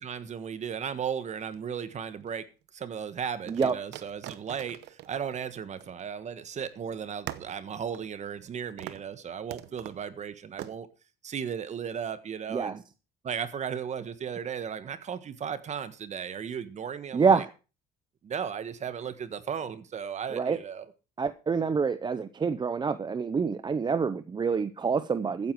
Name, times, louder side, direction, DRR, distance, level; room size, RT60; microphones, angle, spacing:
voice 1, 0.0-2.5 2.7-10.9 11.2-12.8 13.2-17.4 18.2-20.9, right 7 dB, 45° right, 1.5 m, -35 dB
sound 1, 1.4-2.3 3.5-6.4 6.7-6.8 7.3-8.5 8.8-9.1 9.5-10.0 10.6-10.8, right 14 dB, 80° right, 0.9 m, -43 dB
voice 2, 17.1-17.5 20.3-20.6 21.2-25.5, right 5 dB, 25° right, 0.7 m, -27 dB
14.5 x 9.6 x 4.7 m
cardioid pair, 110°, 17 cm